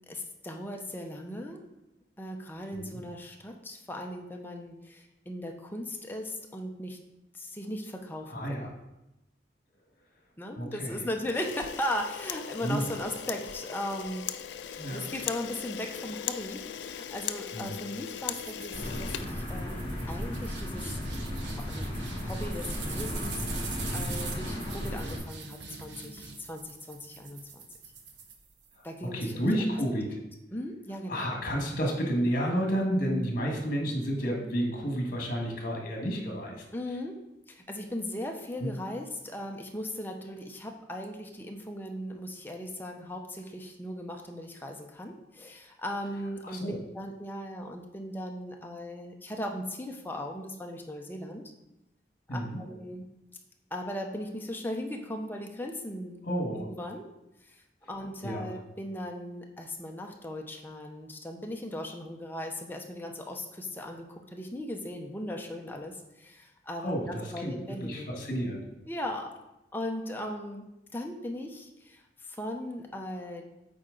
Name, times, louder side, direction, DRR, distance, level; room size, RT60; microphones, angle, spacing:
voice 1, 0.1-1.6 2.2-7.0 7.3-8.7 10.4-14.3 14.6-21.0 21.4-23.4 23.9-27.6 28.8-29.7 30.5-31.3 36.7-37.1 37.5-46.6 46.9-51.4 52.3-53.0 53.7-56.2 56.7-57.1 57.4-57.6 57.9-68.2 68.9-69.3 69.7-70.7 70.9-73.4, left 1 dB, 10° left, 2 dB, 0.7 m, -38 dB
voice 2, 8.3-8.7 10.6-11.0 12.6-12.8 14.8-15.0 17.5-17.8 23.8-24.2 29.0-30.1 31.1-36.6 38.6-38.7 46.4-46.8 52.3-52.6 56.2-56.7 58.2-58.5 66.8-68.6, equal, 50° left, 0 dB, 1.6 m, -31 dB
Camera, 11.2-20.0, left 9 dB, 85° left, 0.4 m, -39 dB
sound 1, 18.3-28.9, right 5 dB, 85° right, 0.9 m, -43 dB
sound 2, 18.7-25.2, left 1 dB, 30° left, 1.5 m, -35 dB
8.6 x 4.3 x 3.9 m, 0.93 s
head